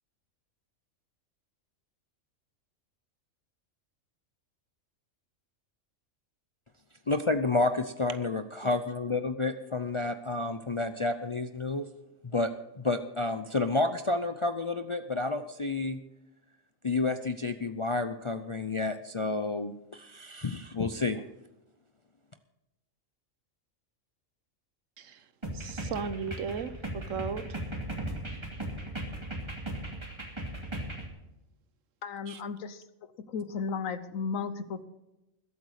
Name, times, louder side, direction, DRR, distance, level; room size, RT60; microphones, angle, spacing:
voice 1, 7.1-11.9 12.2-12.5 12.8-16.0 16.8-21.2, left 3 dB, 40° left, 0.4 m, -30 dB
voice 2, 25.0-27.6 32.3-32.4, right 6 dB, 75° right, 1.2 m, -37 dB
sound 1, 25.4-31.1, right 1 dB, 20° right, 2.5 m, -37 dB
voice 3, 32.0-32.8 33.3-34.9, left 5 dB, 80° left, 1.4 m, -34 dB
21.0 x 8.3 x 4.9 m
omnidirectional pair, 1.4 m